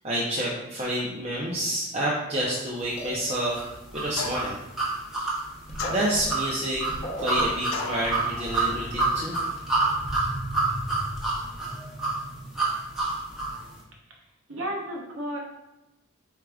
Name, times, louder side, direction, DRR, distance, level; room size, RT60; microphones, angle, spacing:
voice 1, 0.0-3.6 3.9-4.6 5.2-5.4 5.9-6.8 7.2-9.4, right 1 dB, 30° right, -5 dB, 0.6 m, -28 dB
sound 1, 3.0-3.8 5.4-5.5 5.7-8.7, equal, 30° left, 0.8 m, -37 dB
sound 2, 3.5-13.6, right 3 dB, ahead, 1.0 m, -28 dB
sound 3, 4.1-4.6 5.8-6.5 7.7-8.1, left 5 dB, 85° left, 0.4 m, -34 dB
voice 2, 14.5-15.4, right 1 dB, 80° right, -1 dB, 1.0 m, -33 dB
4.8 x 4.5 x 2.3 m, 0.94 s
head